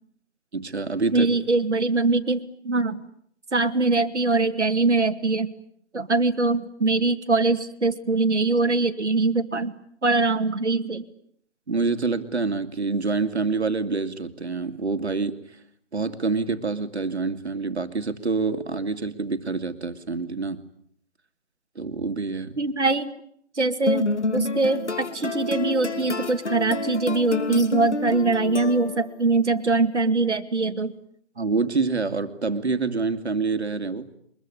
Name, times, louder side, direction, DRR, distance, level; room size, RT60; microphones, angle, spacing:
voice 1, 0.5-1.3 11.7-15.6 15.9-20.6 21.7-22.6 31.4-34.1, right 4 dB, 70° right, 9 dB, 2.6 m, -26 dB
voice 2, 1.1-3.0 3.5-5.5 5.9-9.8 10.0-11.1 22.6-23.1 23.6-31.0, right 3 dB, 85° right, 7 dB, 2.2 m, -23 dB
sound 1, 23.9-29.2, left 2 dB, 85° left, 2.9 m, -29 dB
23.5 x 21.5 x 10.0 m, 0.67 s
figure-of-eight pair, 165°, 34 cm